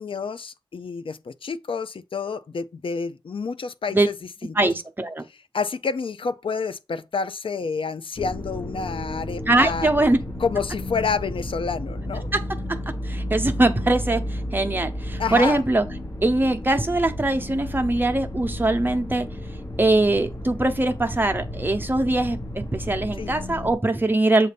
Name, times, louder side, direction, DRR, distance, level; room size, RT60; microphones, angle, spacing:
voice 1, 0.0-4.1 4.4-4.6 5.5-9.9 10.4-12.3 15.2-15.6 23.1-23.3, left 5 dB, 70° left, 0.5 m, -29 dB
voice 2, 4.5-5.2 9.5-10.2 12.3-12.8 13.0-15.8 16.2-19.3 19.8-24.5, right 2 dB, 20° right, 0.8 m, -22 dB
sound 1, 8.2-23.7, left 1 dB, 35° left, 1.1 m, -33 dB
7.5 x 2.7 x 5.1 m
wide cardioid pair, 90°, 9 cm